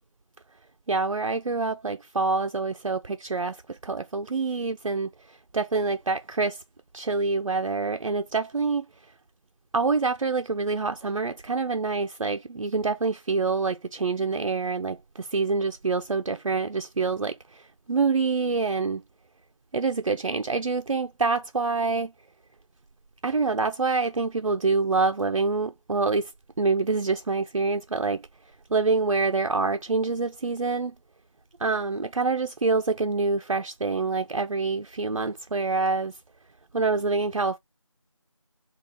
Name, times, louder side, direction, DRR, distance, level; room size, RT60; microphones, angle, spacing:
voice 1, 0.9-6.6 6.9-8.9 9.7-17.6 17.9-19.0 19.7-22.1 23.2-26.3 26.6-28.2 28.7-30.9 31.6-36.1 36.7-37.6, right 4 dB, 85° right, 0.4 m, -26 dB
3.7 x 2.3 x 2.9 m
figure-of-eight pair, 175°, 17 cm